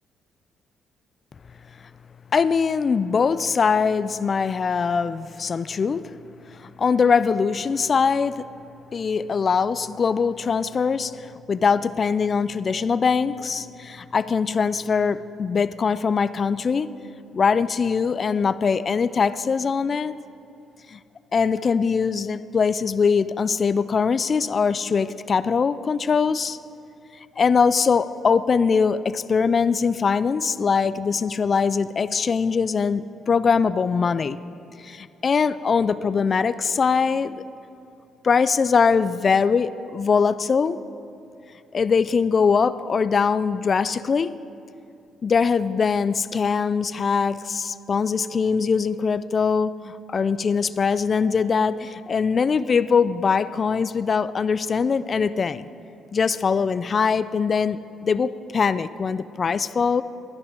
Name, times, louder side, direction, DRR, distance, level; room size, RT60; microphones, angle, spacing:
voice 1, 2.3-6.1 6.6-8.5 8.9-16.9 17.3-20.1 20.9-21.0 21.3-26.6 27.4-34.4 34.8-37.4 38.2-40.8 41.7-44.3 45.2-55.7 56.1-60.0, left 5 dB, 40° left, 15 dB, 0.3 m, -22 dB
12.0 x 10.5 x 5.1 m, 2.6 s
cardioid pair, 90°, 0 cm